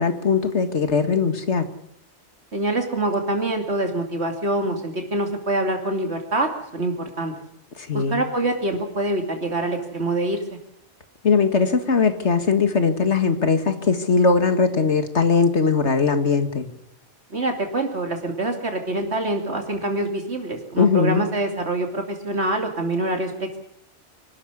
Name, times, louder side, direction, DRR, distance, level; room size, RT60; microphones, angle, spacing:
voice 1, 0.0-1.7 7.8-8.2 11.2-16.7 20.8-21.3, left 5 dB, 75° left, 8 dB, 2.1 m, -20 dB
voice 2, 2.5-7.3 7.9-10.4 17.3-23.6, right 2 dB, 65° right, 3 dB, 3.0 m, -25 dB
25.5 x 13.0 x 9.8 m, 0.74 s
omnidirectional pair, 1.2 m